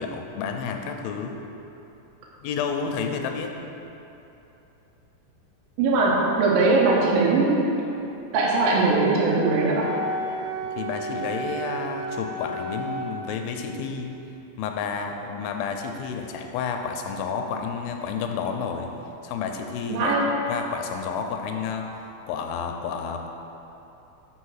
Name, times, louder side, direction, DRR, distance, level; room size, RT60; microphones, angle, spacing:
voice 1, 0.0-1.4 2.4-3.6 10.7-14.1 14.6-18.9 19.2-20.2 20.5-23.3, left 6 dB, 90° left, 4 dB, 2.5 m, -30 dB
voice 2, 5.8-7.7 8.3-10.0 19.9-20.3, right 3 dB, 80° right, -3 dB, 2.6 m, -20 dB
Wind instrument woodwind instrument, 9.3-13.1, right 1 dB, 45° right, 2.2 m, -32 dB
5.9 x 5.5 x 6.3 m, 2.9 s
omnidirectional pair, 4.2 m